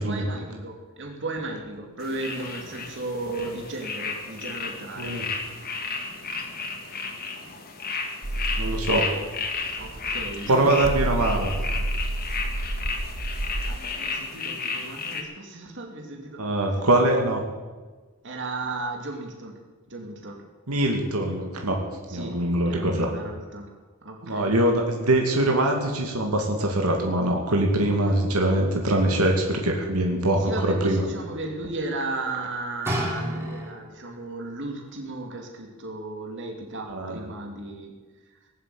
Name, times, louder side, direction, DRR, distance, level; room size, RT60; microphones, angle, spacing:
voice 1, 0.0-5.1 9.8-10.9 13.7-16.4 18.2-19.6 19.9-20.4 22.1-22.4 22.7-23.7 24.0-24.5 27.8-27.9 30.4-37.9, right 2 dB, 55° right, 2 dB, 2.7 m, -35 dB
sound 1, 2.0-15.2, left 4 dB, 45° left, 2.1 m, -33 dB
voice 2, 5.0-5.3 8.6-9.1 10.5-11.5 16.4-17.4 20.7-21.8 22.1-23.1 24.2-31.0 36.9-37.2, right 1 dB, 90° right, 1 dB, 2.3 m, -23 dB
sound 2, 8.2-13.8, right 1 dB, 35° right, 0.8 m, -30 dB
sound 3, 32.8-34.1 34.9-35.0, equal, 10° right, 3.2 m, -30 dB
20.0 x 7.8 x 8.4 m, 1.3 s
head